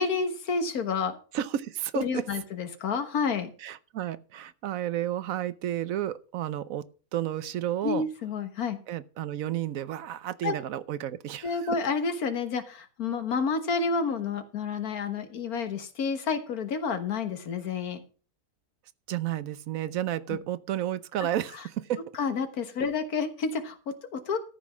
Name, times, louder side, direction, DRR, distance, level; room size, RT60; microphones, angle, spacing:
voice 1, 0.0-1.2 2.0-3.5 7.8-8.8 10.4-10.6 11.4-18.0 22.2-24.4, left 5 dB, 70° left, 1.8 m, -29 dB
voice 2, 1.3-2.2 3.6-8.1 8.9-11.8 19.1-22.2, right 11 dB, 70° right, 1.1 m, -32 dB
13.5 x 5.7 x 6.0 m
omnidirectional pair, 1.6 m